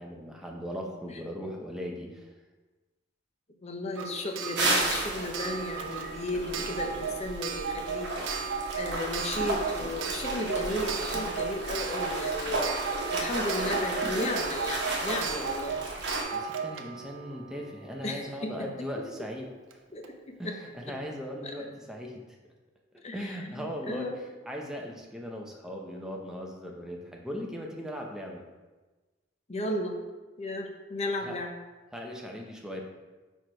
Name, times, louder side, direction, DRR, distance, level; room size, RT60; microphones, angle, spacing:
voice 1, 0.0-2.3 16.3-19.5 20.4-22.2 23.1-28.4 31.2-31.4 31.9-32.8, equal, 5° right, 0 dB, 0.7 m, -38 dB
voice 2, 3.6-8.1 8.8-12.7 13.1-15.8 18.0-18.9 19.9-20.6 21.4-21.5 23.0-24.2 29.5-29.9 30.4-31.5, left 1 dB, 35° left, 3 dB, 0.7 m, -34 dB
Clock, 4.0-18.5 19.7-19.8 20.0-20.1, right 6 dB, 80° right, 0.5 m, -36 dB
sound 1, 4.5-16.2, right 2 dB, 60° right, 1.1 m, -33 dB
4.8 x 4.4 x 4.6 m, 1.2 s
head